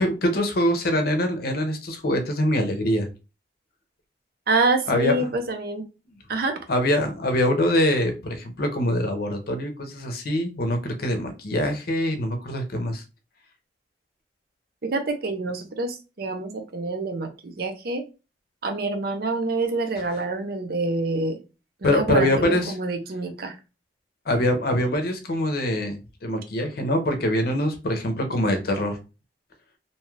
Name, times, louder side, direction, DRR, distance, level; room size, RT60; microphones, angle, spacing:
voice 1, 0.0-3.1 4.9-5.3 6.7-13.0 21.8-22.7 24.3-29.0, left 1 dB, 55° left, 5 dB, 0.6 m, -24 dB
voice 2, 4.5-5.8 6.3-6.6 14.8-18.0 18.6-21.4 21.8-23.6, right 3 dB, 60° right, 5 dB, 0.6 m, -26 dB
2.7 x 2.3 x 3.1 m, 0.30 s
head